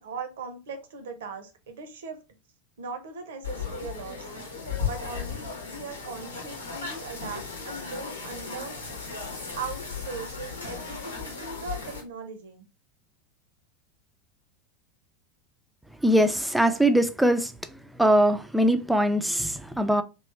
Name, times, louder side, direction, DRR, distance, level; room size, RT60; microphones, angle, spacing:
voice 1, 0.0-2.2 2.8-4.3 4.8-8.7 9.6-12.7, right 4 dB, 65° right, 0.8 m, -39 dB
sound 1, 3.4-12.0, left 5 dB, 80° left, 0.9 m, -36 dB
voice 2, 16.0-17.5 18.0-20.0, right 1 dB, ahead, 0.4 m, -21 dB
3.2 x 2.8 x 3.2 m
figure-of-eight pair, 80°, 0 cm